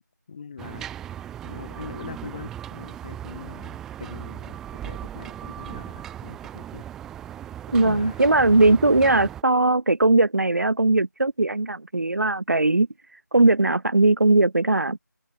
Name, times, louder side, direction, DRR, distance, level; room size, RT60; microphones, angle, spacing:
voice 1, 0.3-0.8 1.4-6.8 7.8-8.3, left 6 dB, 25° left, 4.9 m, -41 dB
sound 1, 0.6-9.4, right 11 dB, 5° right, 2.3 m, -38 dB
voice 2, 7.7-12.9 13.3-15.0, right 2 dB, 60° right, 4.1 m, -19 dB
figure-of-eight pair, 170°, 10 cm